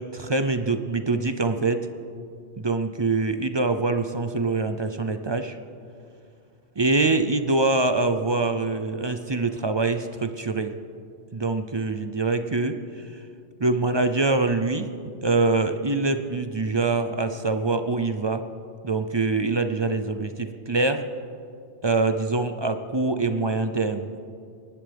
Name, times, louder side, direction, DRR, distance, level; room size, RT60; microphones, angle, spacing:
voice 1, 0.0-1.9 2.6-5.6 6.8-10.7 11.3-13.2 13.6-14.9 15.2-18.4 18.8-21.1 21.8-24.2, right 3 dB, 35° right, 8 dB, 0.4 m, -24 dB
25.5 x 11.5 x 3.4 m, 2.4 s
omnidirectional pair, 1.1 m